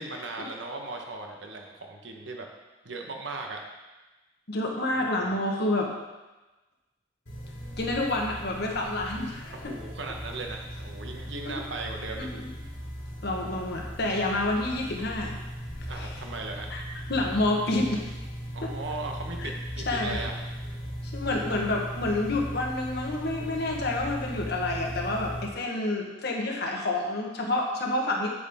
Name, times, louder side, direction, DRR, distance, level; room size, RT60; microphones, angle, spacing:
voice 1, 0.0-2.5 2.8-3.6 5.0-5.2 9.5-12.3 15.9-16.7 18.5-20.3, right 3 dB, 70° right, 2 dB, 1.2 m, -37 dB
voice 2, 4.5-5.9 7.8-9.7 11.4-11.6 12.2-12.5 13.2-15.4 15.9-16.1 16.7-16.8 17.1-18.1 18.6-18.7 19.4-19.5 19.9-20.2 21.0-28.3, left 2 dB, 60° left, 0 dB, 1.3 m, -28 dB
sound 1, 7.3-25.5, equal, 75° left, 2.8 m, -38 dB
8.3 x 7.7 x 3.7 m, 1.1 s
head